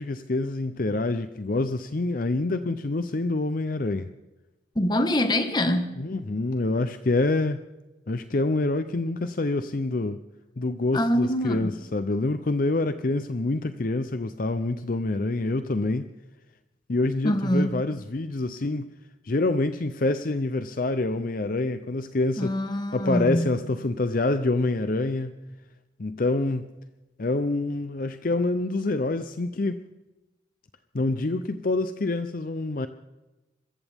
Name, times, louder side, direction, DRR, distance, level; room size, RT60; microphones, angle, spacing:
voice 1, 0.0-4.1 6.0-7.6 8.1-10.2 10.6-16.1 16.9-18.9 19.2-22.6 22.9-25.4 26.0-26.7 27.2-29.8 30.9-32.9, left 2 dB, 45° left, 10 dB, 0.6 m, -26 dB
voice 2, 4.7-6.0 10.9-11.7 17.2-17.7 22.4-23.5, left 1 dB, 20° left, 8 dB, 1.2 m, -24 dB
25.5 x 14.5 x 3.5 m, 1.0 s
head